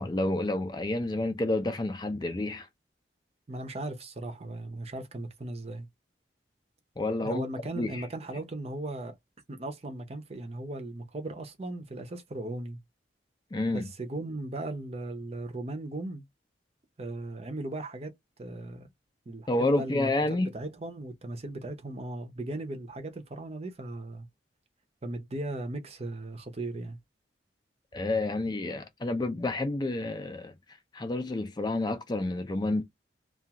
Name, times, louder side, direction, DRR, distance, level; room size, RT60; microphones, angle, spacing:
voice 1, 0.0-2.7 7.0-7.5 7.8-8.1 13.5-13.9 19.5-20.5 27.9-32.8, left 2 dB, 20° left, 0.4 m, -29 dB
voice 2, 3.5-5.9 7.2-9.2 9.5-12.8 13.7-16.2 17.0-18.9 19.3-20.1 20.4-24.3 25.0-27.0, right 2 dB, 35° right, 0.6 m, -37 dB
2.4 x 2.4 x 2.8 m
head